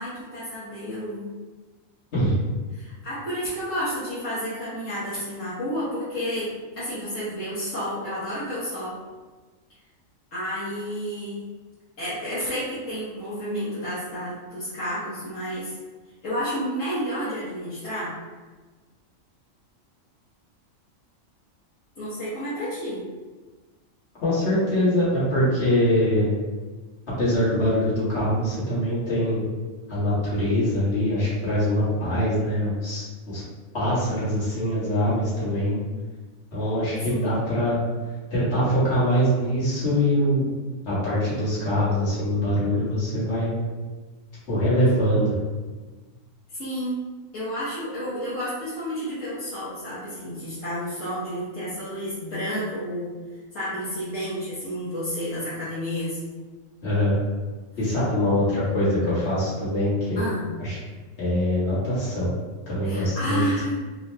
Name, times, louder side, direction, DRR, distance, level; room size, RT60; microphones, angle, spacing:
voice 1, 0.0-1.3 2.7-9.0 10.3-11.4 12.0-15.7 16.2-18.1 22.0-23.1 37.1-37.3 44.9-45.0 46.5-47.0 47.3-53.1 53.5-56.2 60.2-60.5 62.8-63.7, equal, 70° left, -12 dB, 1.4 m, -30 dB
voice 2, 24.2-26.3 27.2-29.5 29.9-33.4 33.7-35.8 36.5-37.8 38.3-40.5 40.9-43.5 44.5-45.3 56.8-57.2 57.8-60.2 60.6-60.8 61.2-62.3 62.7-63.4, equal, 55° left, -10 dB, 1.9 m, -23 dB
4.3 x 2.9 x 2.2 m, 1.3 s
omnidirectional pair, 1.4 m